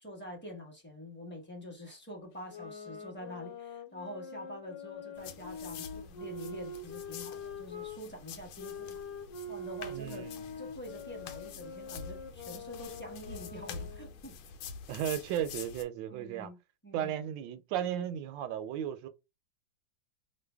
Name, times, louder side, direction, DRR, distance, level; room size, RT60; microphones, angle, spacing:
voice 1, 0.0-9.0 9.5-10.3 10.6-14.4 14.9-15.0 16.1-17.1, equal, 10° left, 0.8 m, -46 dB
sound 1, 2.4-8.0 8.6-14.2, left 3 dB, 65° left, 1.3 m, -44 dB
sound 2, 5.2-15.8, left 6 dB, 90° left, 1.4 m, -47 dB
voice 2, 9.9-10.4 14.9-16.5 16.9-19.1, right 10 dB, 75° right, 1.2 m, -35 dB
3.2 x 2.1 x 3.4 m
omnidirectional pair, 2.1 m